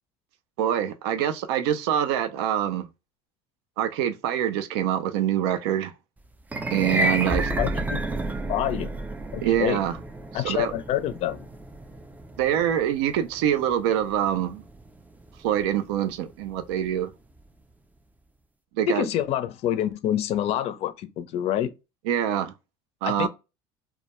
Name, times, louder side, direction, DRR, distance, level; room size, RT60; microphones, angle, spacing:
voice 1, 0.6-2.9 3.8-5.9 6.7-7.5 9.4-10.0 10.3-10.7 12.4-14.6 15.4-17.1 18.8-19.1 22.1-22.5 23.0-23.3, right 10 dB, 80° right, 0.4 m, -25 dB
sound 1, 6.4-16.7, right 2 dB, 10° right, 0.4 m, -33 dB
sound 2, 7.3-13.0 13.3-13.5, equal, 10° left, 0.7 m, -35 dB
voice 2, 7.6-8.0 8.5-9.0 9.3-9.8 10.3-11.5 18.9-21.7 23.0-23.3, left 11 dB, 55° left, 0.4 m, -27 dB
2.2 x 2.1 x 2.9 m
supercardioid pair, 95°, 13 cm